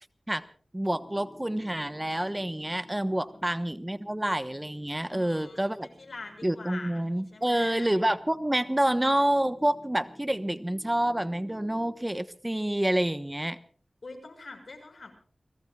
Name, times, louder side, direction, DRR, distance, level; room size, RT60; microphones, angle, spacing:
voice 1, 0.7-5.9 6.4-13.6, right 1 dB, 15° right, 11 dB, 1.1 m, -28 dB
Piano, 0.9-11.9, left 1 dB, 10° left, 4.7 m, -53 dB
voice 2, 5.1-7.9 14.0-15.1, left 3 dB, 75° left, 4 dB, 6.5 m, -45 dB
30.0 x 18.0 x 2.4 m, 0.44 s
wide cardioid pair, 85°, 0 cm